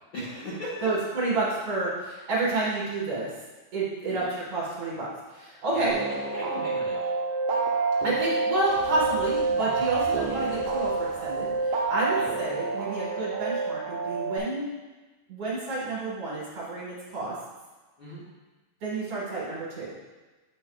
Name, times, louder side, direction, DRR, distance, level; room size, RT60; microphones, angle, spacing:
voice 1, 0.1-0.9 4.1-4.3 5.7-5.9 6.3-7.1 12.1-12.3 18.0-18.2, equal, 50° left, -9 dB, 1.8 m, -37 dB
voice 2, 0.8-3.3 3.7-5.9 8.0-14.7 15.3-17.3 18.8-19.9, right 2 dB, 55° right, -7 dB, 2.2 m, -29 dB
sound 1, 5.9-14.4, right 4 dB, 75° right, 1.5 m, -28 dB
sound 2, 8.7-12.4, left 2 dB, 70° left, 1.3 m, -46 dB
8.4 x 5.5 x 2.3 m, 1.2 s
omnidirectional pair, 3.4 m